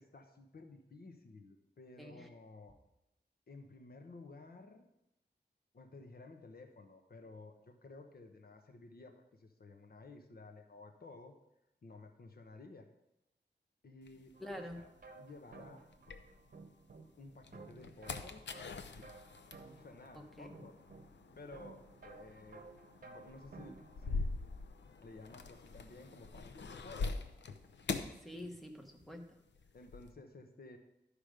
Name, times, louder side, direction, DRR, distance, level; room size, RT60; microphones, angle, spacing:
voice 1, 0.0-2.7 3.5-4.9 5.7-11.4 11.8-12.9 13.8-14.9 15.1-15.8 17.2-18.4 18.9-19.1 19.8-20.7 21.3-22.6 23.0-24.3 25.0-27.2 29.7-30.8, left 3 dB, 60° left, 5 dB, 1.0 m, -54 dB
voice 2, 2.0-2.3 14.4-14.8 20.1-20.6 28.2-29.3, left 1 dB, ahead, 3 dB, 1.1 m, -47 dB
sound 1, 14.1-16.8 17.3-29.0 29.3-30.1, left 4 dB, 90° left, 0.7 m, -44 dB
sound 2, 14.3-24.2, right 3 dB, 55° right, 0.9 m, -56 dB
12.0 x 5.1 x 5.1 m, 0.88 s
wide cardioid pair, 125°, 18 cm